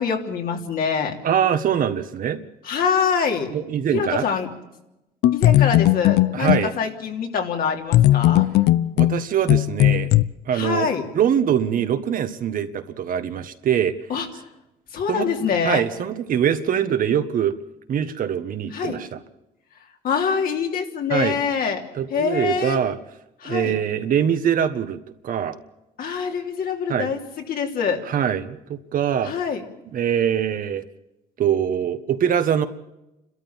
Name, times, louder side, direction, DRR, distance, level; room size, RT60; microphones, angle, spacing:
voice 1, 0.0-1.2 2.6-3.5 3.9-4.5 5.3-8.5 10.5-11.1 14.1-14.3 14.9-15.8 18.7-19.0 20.0-21.8 22.1-22.8 23.4-23.8 26.0-27.2 27.5-28.0 29.2-29.6, left 6 dB, 60° left, 3 dB, 3.1 m, -24 dB
voice 2, 1.2-2.4 3.5-4.3 6.3-6.7 9.0-10.1 10.5-10.9 11.1-13.9 15.1-15.3 15.6-17.5 17.9-19.1 21.1-21.4 22.0-23.0 23.4-25.6 26.9-27.1 28.1-29.3 29.9-30.8 31.4-32.6, right 9 dB, 55° right, 9 dB, 1.5 m, -23 dB
sound 1, 5.2-6.7 7.9-10.2, left 15 dB, 80° left, 0.7 m, -17 dB
29.0 x 13.5 x 7.3 m, 0.94 s
cardioid pair, 110°, 17 cm